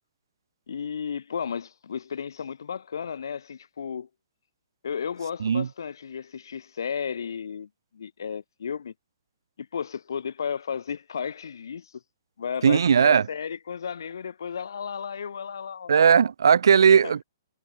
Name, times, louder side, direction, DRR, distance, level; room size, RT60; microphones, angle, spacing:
voice 1, 0.7-4.1 4.8-8.9 9.6-12.0 12.4-15.9 16.9-17.1, left 7 dB, 75° left, 3.6 m, -34 dB
voice 2, 12.6-13.3 15.9-17.2, right 7 dB, 80° right, 1.4 m, -18 dB
hypercardioid pair, 180°, 2 cm